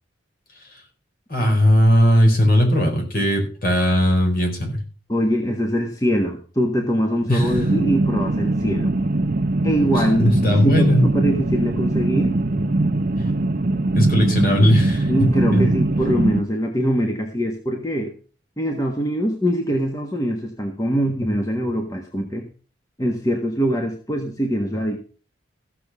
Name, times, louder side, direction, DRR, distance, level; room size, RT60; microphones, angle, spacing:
voice 1, 1.3-4.8 7.3-7.6 9.9-11.1 13.9-15.7, equal, 45° left, 2 dB, 4.3 m, -18 dB
voice 2, 5.1-8.9 9.6-10.3 10.6-12.4 15.1-18.1 18.6-22.4 23.0-25.0, equal, 15° left, 2 dB, 1.4 m, -23 dB
sound 1, 7.4-16.4, right 2 dB, 45° right, 0.7 m, -21 dB
15.0 x 6.9 x 6.0 m, 0.38 s
head